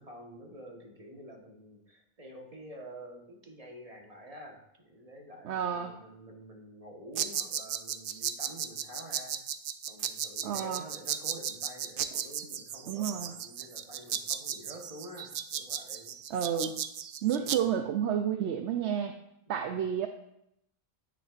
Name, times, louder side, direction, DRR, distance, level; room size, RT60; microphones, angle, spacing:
voice 1, 0.0-9.4 9.9-16.2 17.3-17.8 19.5-19.9, equal, 35° right, 1 dB, 1.4 m, -48 dB
voice 2, 5.4-5.9 10.4-10.8 12.9-13.3 16.3-16.7 17.2-19.1 19.5-20.1, right 9 dB, 85° right, 6 dB, 0.9 m, -30 dB
sound 1, 7.2-17.6, right 9 dB, 60° right, 0.6 m, -35 dB
10.0 x 9.2 x 2.5 m, 0.80 s
omnidirectional pair, 1.1 m